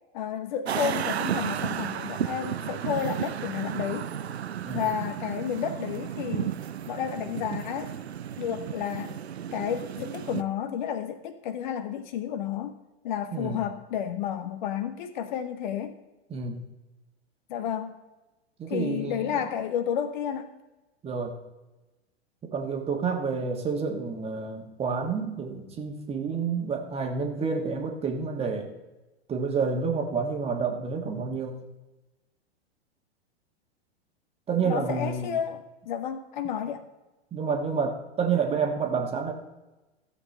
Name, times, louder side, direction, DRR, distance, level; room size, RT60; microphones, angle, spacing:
voice 1, 0.1-4.1 4.7-6.5 6.9-7.9 8.4-9.2 9.5-12.7 13.0-15.9 17.5-18.0 18.7-20.5 34.6-36.8, left 9 dB, 45° left, 9 dB, 0.8 m, -31 dB
sound 1, 0.7-10.4, right 9 dB, 70° right, 0.6 m, -33 dB
voice 2, 13.3-13.6 16.3-16.6 18.6-19.4 21.0-21.4 22.5-28.7 29.3-31.6 34.5-35.4 37.3-39.3, right 5 dB, 20° right, 4 dB, 1.4 m, -29 dB
14.5 x 7.7 x 3.2 m, 1.1 s
figure-of-eight pair, 100°, 33 cm